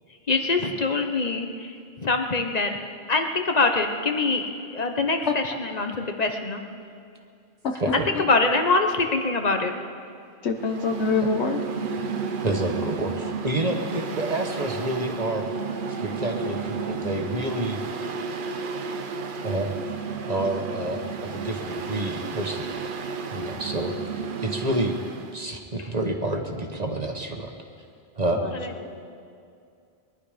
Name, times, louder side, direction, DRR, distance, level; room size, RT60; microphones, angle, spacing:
voice 1, 0.3-1.7 2.0-2.8 3.1-4.5 4.7-6.6 7.9-9.7, left 3 dB, 40° left, 5 dB, 1.1 m, -24 dB
voice 2, 10.4-11.6 28.3-28.5 28.8-29.0, left 4 dB, 90° left, 4 dB, 1.4 m, -25 dB
Mechanical fan, 10.5-25.4, right 5 dB, 55° right, 0.9 m, -32 dB
voice 3, 12.4-15.4 15.9-17.8 19.4-19.7 20.2-22.7 23.3-23.9 24.4-25.0 25.3-27.5 28.2-28.4, right 1 dB, 40° right, 3 dB, 1.3 m, -28 dB
22.0 x 11.5 x 5.1 m, 2.4 s
omnidirectional pair, 1.1 m